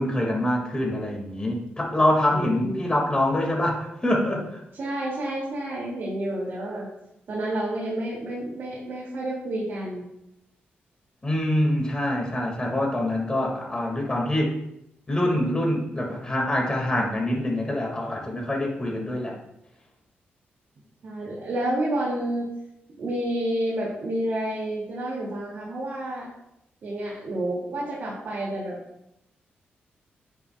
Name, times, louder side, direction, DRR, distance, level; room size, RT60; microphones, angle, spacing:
voice 1, 0.0-4.6 11.2-14.5 15.1-19.4, left 1 dB, 20° left, -1 dB, 2.1 m, -25 dB
voice 2, 2.3-2.9 4.8-6.9 7.3-10.0 21.0-22.5 23.0-26.3 26.8-28.8, right 1 dB, 60° right, -6 dB, 2.5 m, -29 dB
10.0 x 7.0 x 2.4 m, 0.83 s
cardioid pair, 120°, 4 cm